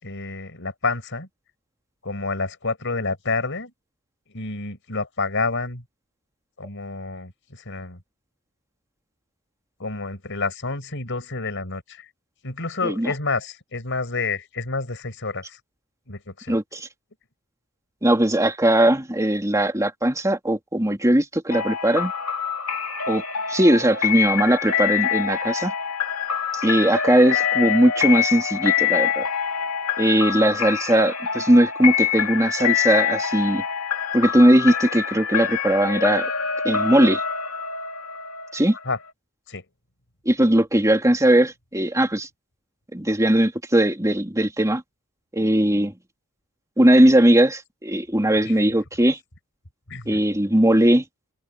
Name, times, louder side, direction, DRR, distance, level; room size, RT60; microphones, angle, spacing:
voice 1, 0.0-1.3 2.0-3.7 4.3-5.8 6.6-8.0 9.8-12.0 12.4-15.6 16.1-16.6 38.9-39.0 39.5-39.6 48.5-48.6 49.9-50.2, left 3 dB, 60° left, 5.4 m, -29 dB
voice 2, 12.8-13.1 16.5-16.9 18.0-22.1 23.1-23.2 23.5-25.7 26.5-29.3 30.0-33.6 34.1-36.3 36.6-37.2 38.5-38.8 40.2-42.3 42.9-44.8 45.3-45.9 46.8-49.2 50.1-51.0, right 1 dB, 15° right, 2.9 m, -19 dB
sound 1, 21.5-39.1, left 8 dB, 80° left, 2.4 m, -25 dB
open air
head